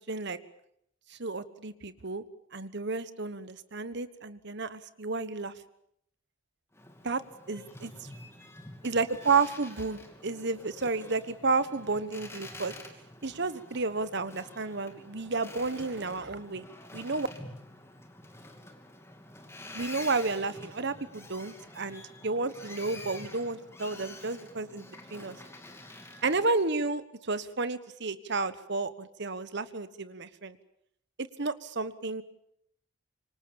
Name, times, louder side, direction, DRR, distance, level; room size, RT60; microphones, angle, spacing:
voice 1, 0.1-0.4 1.1-2.2 2.5-5.5 7.0-7.2 7.5-7.9 8.8-12.7 13.2-16.7 16.9-17.3 19.7-25.4 26.2-30.6 31.2-32.2, right 3 dB, 55° right, 13 dB, 1.3 m, -31 dB
Boat Water vehicle, 6.7-26.5, left 2 dB, 10° left, 2.7 m, -48 dB
26.5 x 24.5 x 7.1 m, 0.73 s
head